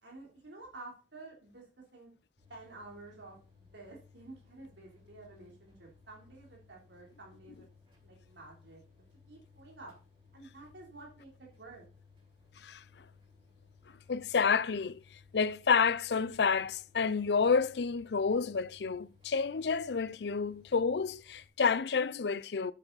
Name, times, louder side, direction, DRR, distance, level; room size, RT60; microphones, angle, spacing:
voice 1, 0.0-1.6 1.9-2.1 2.5-7.7 8.0-8.8 9.3-9.9 10.3-11.9, right 2 dB, 80° right, 3.4 m, -51 dB
sound 1, 2.4-21.5, left 5 dB, 30° right, 6.0 m, -61 dB
voice 2, 14.1-15.0 15.3-22.7, left 5 dB, 70° left, 0.5 m, -29 dB
9.0 x 8.4 x 4.0 m
head